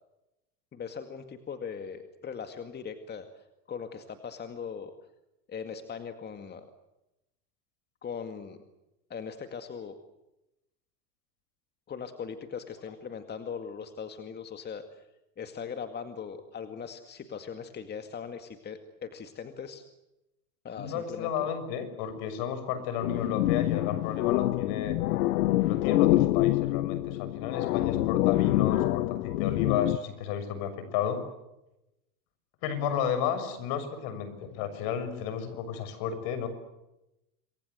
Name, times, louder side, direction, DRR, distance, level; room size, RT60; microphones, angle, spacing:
voice 1, 0.7-4.9 5.5-6.7 8.0-8.6 9.1-9.9 11.9-15.1 15.4-19.8 20.6-21.5 27.8-28.1, left 6 dB, 20° left, 8 dB, 2.1 m, -40 dB
voice 2, 20.8-25.0 25.6-31.2 32.6-36.5, left 8 dB, 55° left, 11 dB, 6.7 m, -33 dB
sound 1, 23.0-30.0, left 16 dB, 75° left, 1.2 m, -26 dB
27.5 x 22.5 x 8.1 m, 0.92 s
supercardioid pair, 130°, 45 cm